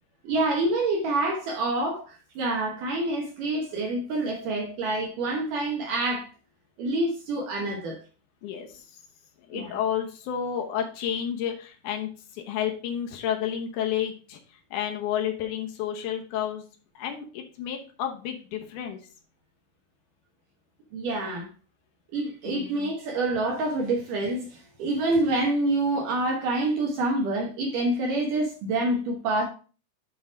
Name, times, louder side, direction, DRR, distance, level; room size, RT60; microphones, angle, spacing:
voice 1, 0.2-6.3 6.8-8.0 9.5-9.8 20.9-21.5 22.1-29.4, right 2 dB, 70° right, 0 dB, 2.1 m, -27 dB
voice 2, 8.4-8.9 9.4-16.7 17.0-19.0 22.5-22.8, left 9 dB, 75° left, 4 dB, 1.9 m, -31 dB
7.8 x 3.9 x 5.0 m, 0.37 s
omnidirectional pair, 4.9 m